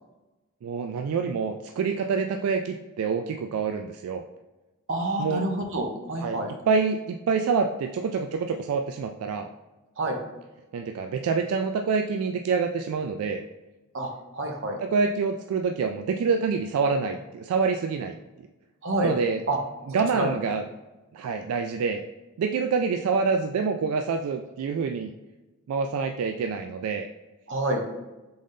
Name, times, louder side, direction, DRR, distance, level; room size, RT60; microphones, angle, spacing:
voice 1, 0.6-4.2 5.2-5.4 6.2-6.4 6.7-9.5 10.7-13.4 14.8-18.2 19.0-19.4 19.9-20.6 21.1-22.0 22.4-25.1 25.7-27.1, right 5 dB, 85° right, 5 dB, 0.3 m, -26 dB
voice 2, 4.9-6.5 10.0-10.2 13.9-14.8 18.8-19.1 19.5-19.6 20.2-20.3 27.5-27.8, right 1 dB, 60° right, 2 dB, 0.8 m, -27 dB
3.9 x 3.8 x 3.6 m, 1.1 s
head